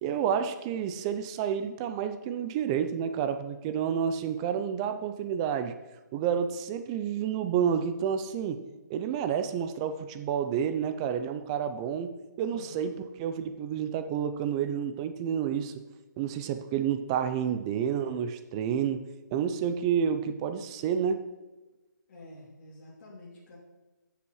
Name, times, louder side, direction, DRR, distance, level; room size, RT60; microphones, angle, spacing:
voice 1, 0.0-5.7 6.1-8.6 8.9-15.7 16.2-19.0 19.3-21.2, right 8 dB, 15° right, 10 dB, 0.5 m, -30 dB
voice 2, 12.5-12.9 22.1-23.6, left 1 dB, 40° left, -6 dB, 3.0 m, -48 dB
13.0 x 6.9 x 4.8 m, 1.1 s
hypercardioid pair, 160°, 10 cm